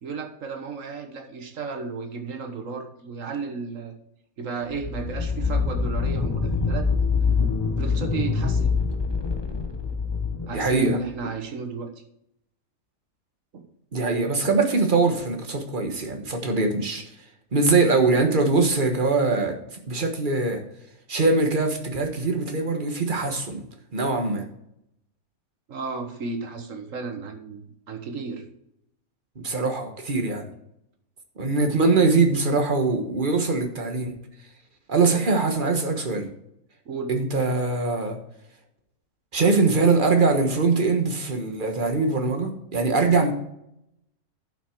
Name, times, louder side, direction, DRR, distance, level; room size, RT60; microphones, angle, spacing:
voice 1, 0.0-3.9 4.4-6.9 7.8-8.8 10.5-11.9 13.5-13.7 25.7-28.4 36.9-37.1, right 4 dB, 65° right, 6 dB, 1.6 m, -33 dB
sound 1, 4.7-11.1, left 5 dB, 20° left, 0.8 m, -25 dB
voice 2, 10.5-11.0 13.9-17.0 17.5-19.6 19.9-20.6 21.1-23.7 23.9-24.4 29.3-30.5 31.4-34.1 34.9-36.3 37.1-38.2 39.3-43.3, right 3 dB, 35° right, 4 dB, 1.5 m, -22 dB
11.0 x 6.1 x 4.6 m, 0.79 s
omnidirectional pair, 1.5 m